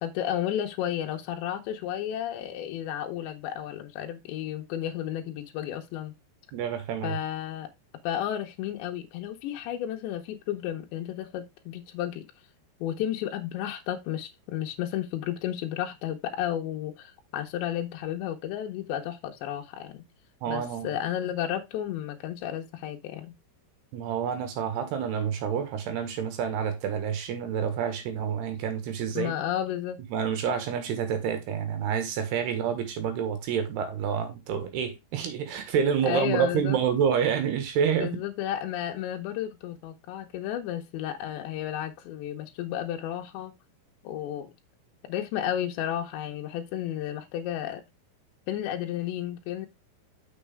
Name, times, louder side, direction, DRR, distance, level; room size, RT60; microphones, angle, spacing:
voice 1, 0.0-6.1 7.0-7.7 8.0-12.3 12.8-20.0 20.5-23.3 29.1-30.0 36.0-36.8 38.0-43.5 44.0-44.5 45.1-47.8 48.5-49.7, left 11 dB, 80° left, 3.2 m, -32 dB
voice 2, 6.5-7.2 20.4-20.9 23.9-29.3 30.1-38.2, right 8 dB, 70° right, 3.3 m, -28 dB
6.8 x 6.5 x 3.5 m
omnidirectional pair, 5.2 m